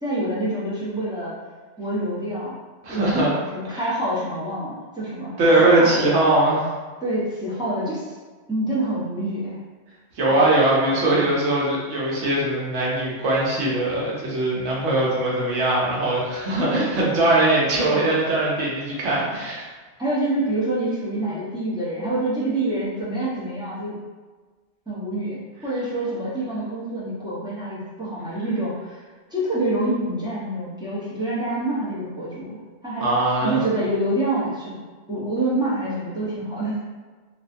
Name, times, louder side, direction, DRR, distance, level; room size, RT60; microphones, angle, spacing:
voice 1, 0.0-1.3 1.8-2.6 2.9-5.3 5.6-6.1 7.0-8.1 8.5-9.6 20.0-24.0 24.9-29.0 29.3-34.7 35.1-36.7, right 1 dB, 5° right, -9 dB, 0.5 m, -26 dB
voice 2, 2.8-3.3 3.7-3.8 5.4-6.6 10.2-19.7 33.0-33.6, right 2 dB, 80° right, -5 dB, 1.1 m, -21 dB
2.6 x 2.2 x 2.5 m, 1.4 s
omnidirectional pair, 1.3 m